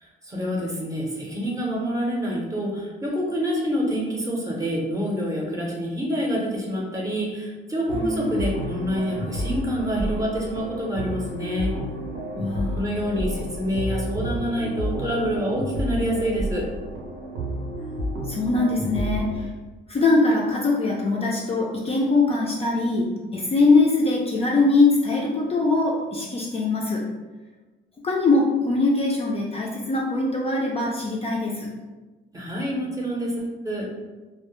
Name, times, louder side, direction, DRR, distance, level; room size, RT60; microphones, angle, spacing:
voice 1, 0.0-11.7 12.8-16.7 32.3-33.9, equal, 15° right, -3 dB, 0.6 m, -27 dB
voice 2, 7.9-8.4 12.4-12.8 18.3-19.5 19.9-27.0 28.0-31.7, left 3 dB, 30° left, -2 dB, 0.4 m, -22 dB
sound 1, 7.9-19.4, equal, 80° right, 0.7 m, -30 dB
2.1 x 2.0 x 2.9 m, 1.2 s
cardioid pair, 90°, 20 cm